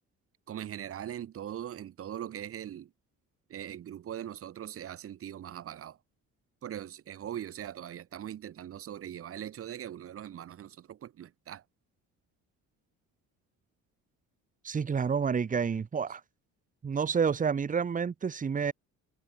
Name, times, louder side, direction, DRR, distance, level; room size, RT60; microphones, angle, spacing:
voice 1, 0.5-2.9 3.5-6.0 6.6-11.6, right 10 dB, 45° right, 5.7 m, -41 dB
voice 2, 14.6-16.2 16.8-18.7, right 6 dB, 25° right, 4.8 m, -29 dB
cardioid pair, 175°, 31 cm